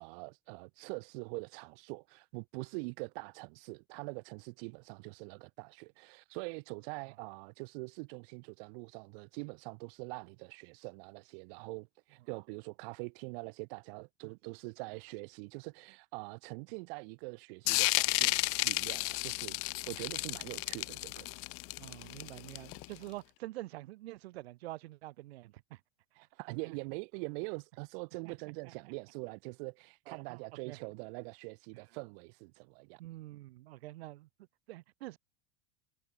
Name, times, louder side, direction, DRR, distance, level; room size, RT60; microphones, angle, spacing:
voice 1, 0.0-19.6 19.9-21.4 26.1-33.0, right 33 dB, 65° right, 1.7 m, -44 dB
voice 2, 14.2-14.6 21.8-25.8 26.1-26.8 28.2-28.3 28.6-28.7 30.1-30.4 30.6-30.8 31.7-31.8 33.0-34.3 34.7-35.2, right 17 dB, 80° right, 4.2 m, -47 dB
sound 1, 17.7-23.0, left 25 dB, 45° left, 0.6 m, -32 dB
supercardioid pair, 120°, 31 cm